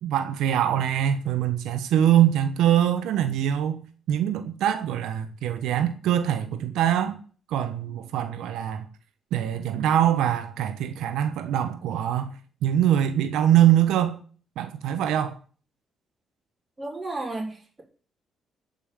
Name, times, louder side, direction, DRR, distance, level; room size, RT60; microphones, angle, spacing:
voice 1, 0.0-7.2 7.5-8.9 9.3-12.3 12.6-14.2 14.6-15.4, right 11 dB, 85° right, 1.1 m, -23 dB
voice 2, 16.8-17.8, right 2 dB, 20° right, 3.9 m, -33 dB
14.0 x 5.5 x 8.7 m
cardioid pair, 90°, 0 cm